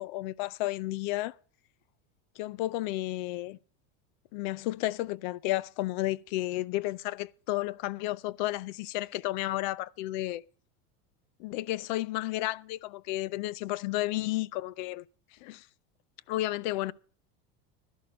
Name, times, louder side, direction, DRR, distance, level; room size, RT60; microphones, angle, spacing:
voice 1, 0.0-1.3 2.4-3.6 4.3-10.4 11.4-15.0 15.3-15.7 16.3-16.9, left 16 dB, 50° left, 0.5 m, -32 dB
12.0 x 11.0 x 5.1 m
supercardioid pair, 175°, 32 cm